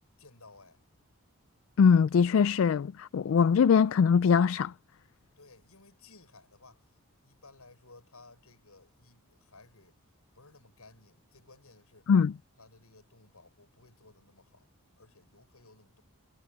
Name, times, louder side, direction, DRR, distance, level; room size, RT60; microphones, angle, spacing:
voice 1, 0.2-0.8 5.4-10.0 10.3-12.1 12.6-16.0, left 3 dB, 80° left, 7.0 m, -57 dB
voice 2, 1.8-4.7 12.1-12.3, left 6 dB, 60° left, 0.3 m, -22 dB
head